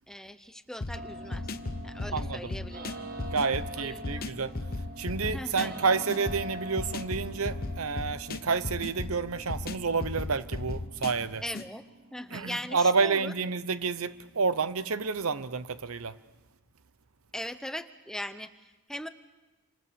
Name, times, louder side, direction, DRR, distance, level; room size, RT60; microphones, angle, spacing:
voice 1, 0.1-1.5 1.8-2.9 3.8-4.3 5.2-5.8 11.4-11.8 12.1-13.3 17.3-19.1, left 1 dB, 5° left, 0.8 m, -40 dB
sound 1, 0.8-11.7, left 2 dB, 45° left, 1.0 m, -37 dB
sound 2, 0.9-14.8, right 1 dB, 45° right, 1.8 m, -45 dB
voice 2, 2.1-2.5 3.2-4.5 5.0-11.5 12.3-16.1, right 4 dB, 80° right, 0.9 m, -29 dB
28.5 x 26.5 x 7.0 m
head